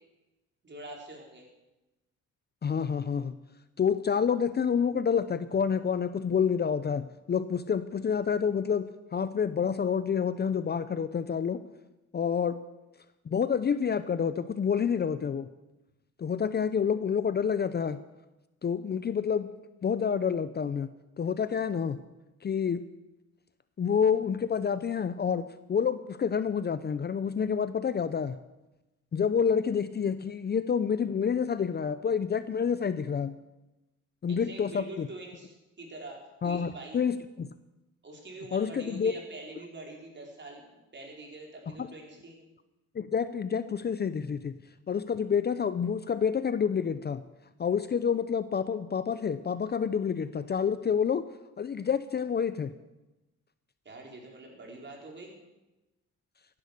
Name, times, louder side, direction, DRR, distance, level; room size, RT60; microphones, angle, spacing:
voice 1, 0.6-1.4 34.3-37.0 38.0-42.4 53.8-55.3, right 2 dB, 35° right, 0 dB, 4.9 m, -45 dB
voice 2, 2.6-3.3 3.8-11.6 12.1-12.6 13.3-15.5 16.2-18.0 18.6-19.5 19.8-20.9 21.2-22.0 22.4-22.8 23.8-28.4 29.1-33.3 34.2-35.1 36.4-37.5 38.5-39.1 41.8-41.9 42.9-44.5 44.9-47.2 47.6-51.2 51.6-52.7, left 7 dB, 35° left, 13 dB, 0.6 m, -28 dB
15.5 x 11.0 x 6.8 m, 1.0 s
cardioid pair, 90°, 30 cm